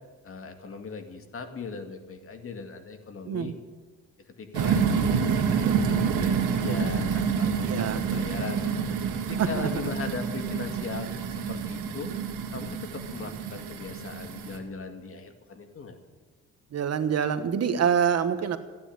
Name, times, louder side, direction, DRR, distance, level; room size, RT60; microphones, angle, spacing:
voice 1, 0.2-3.5 4.4-8.7 9.2-12.1 12.5-16.0, left 4 dB, 45° left, 6 dB, 2.2 m, -38 dB
voice 2, 3.2-3.6 7.6-8.0 9.4-9.7 16.7-18.6, right 7 dB, 55° right, 10 dB, 1.3 m, -26 dB
sound 1, 4.5-14.6, right 6 dB, 90° right, 1.9 m, -28 dB
15.0 x 10.0 x 8.8 m, 1.4 s
cardioid pair, 90°, 30 cm